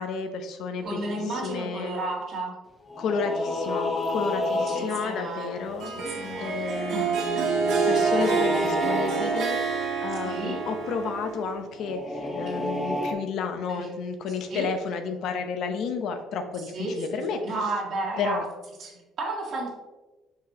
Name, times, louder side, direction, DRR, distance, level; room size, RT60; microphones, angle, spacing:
voice 1, 0.0-2.0 3.0-17.4 18.2-18.4, left 5 dB, 60° left, 6 dB, 0.7 m, -32 dB
sound 1, 0.8-1.7 2.9-6.4 7.4-9.9 11.7-13.1, left 2 dB, 15° left, 0.8 m, -31 dB
voice 2, 0.8-2.5 4.5-6.6 6.9-7.5 7.9-8.8 10.2-10.6 12.3-12.7 13.7-13.9 14.5-14.7 16.7-18.4 18.8-19.7, right 2 dB, 50° right, -3 dB, 2.0 m, -33 dB
Harp, 5.8-11.6, right 5 dB, 70° right, 1.4 m, -27 dB
6.0 x 5.7 x 2.8 m, 1.1 s
cardioid pair, 140°, 0 cm